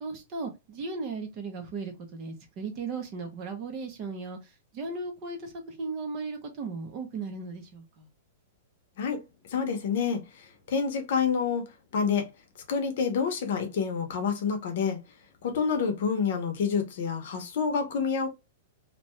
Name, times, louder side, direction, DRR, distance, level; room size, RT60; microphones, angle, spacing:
voice 1, 0.0-8.1, right 4 dB, 25° right, 0.6 m, -36 dB
voice 2, 9.5-12.3 12.7-15.0 15.4-18.3, left 6 dB, 50° left, 0.7 m, -28 dB
2.6 x 2.2 x 3.0 m
supercardioid pair, 180°, 0 cm